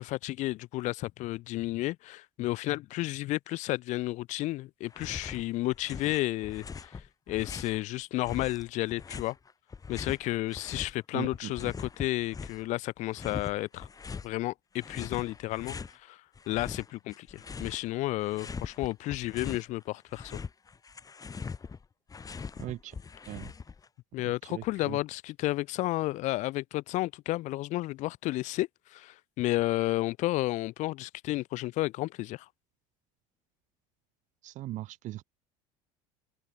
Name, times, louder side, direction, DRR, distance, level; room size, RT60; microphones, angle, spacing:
voice 1, 0.0-9.4 9.9-13.9 14.2-20.4 24.1-32.5, left 18 dB, 60° left, 0.6 m, -32 dB
sound 1, 4.9-5.4 5.7-7.8 8.2-10.9 11.2-12.7 13.1-14.3 14.8-15.9 16.3-17.9 18.2-19.7 20.0-23.9, left 5 dB, 25° left, 4.4 m, -41 dB
voice 2, 11.1-11.7 22.6-22.9 23.3-23.5 24.5-25.0 34.4-35.2, right 15 dB, 60° right, 5.0 m, -39 dB
supercardioid pair, 100°, 14 cm